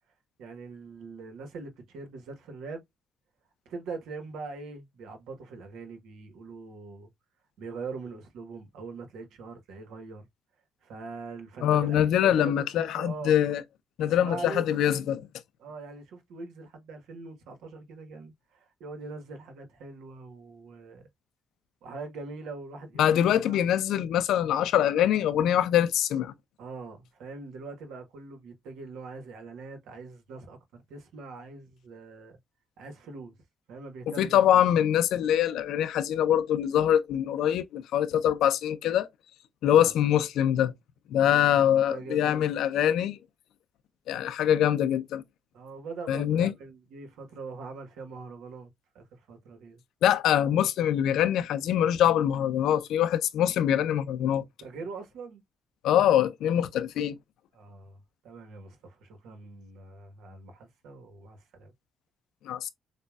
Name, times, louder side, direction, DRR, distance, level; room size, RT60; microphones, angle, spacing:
voice 1, 0.4-2.8 3.6-7.1 7.6-10.3 10.8-13.4 14.0-14.7 15.6-21.1 21.8-23.7 26.6-30.6 30.9-32.4 32.8-33.3 33.7-34.7 39.7-39.9 41.1-42.5 45.5-49.8 54.6-55.4 57.5-61.7, right 4 dB, 85° right, 1.2 m, -42 dB
voice 2, 11.6-13.6 14.0-15.3 23.0-26.3 34.2-39.1 39.6-40.7 41.1-43.2 44.1-45.2 46.1-46.5 50.0-54.4 55.8-57.2 62.4-62.7, left 10 dB, 85° left, 0.6 m, -24 dB
6.6 x 2.3 x 2.3 m
cardioid pair, 90°, 0 cm